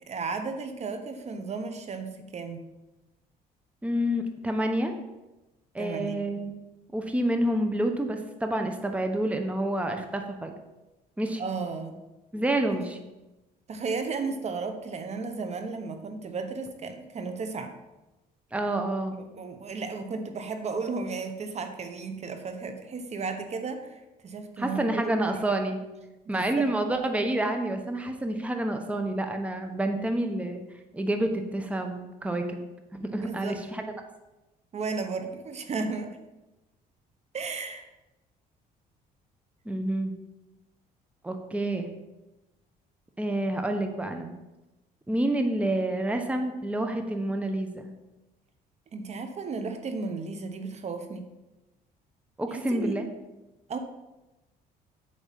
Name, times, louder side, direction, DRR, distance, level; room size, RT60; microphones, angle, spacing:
voice 1, 0.1-2.6 5.8-6.3 11.4-12.0 12.7-12.8 13.7-17.7 19.3-25.4 26.3-26.7 33.2-33.6 34.7-36.2 37.3-37.9 48.9-51.3 52.5-53.0 53.7-53.8, right 4 dB, 40° right, 7 dB, 1.0 m, -34 dB
voice 2, 3.8-4.9 5.7-6.5 6.9-10.5 11.2-11.4 12.3-13.0 18.5-19.2 24.6-25.8 26.3-30.6 30.9-32.6 32.9-33.8 39.6-40.1 41.2-41.9 43.2-44.3 45.1-47.9 52.4-53.1, right 1 dB, 10° right, 5 dB, 1.0 m, -28 dB
8.5 x 4.8 x 7.4 m, 1.0 s
cardioid pair, 110°, 17 cm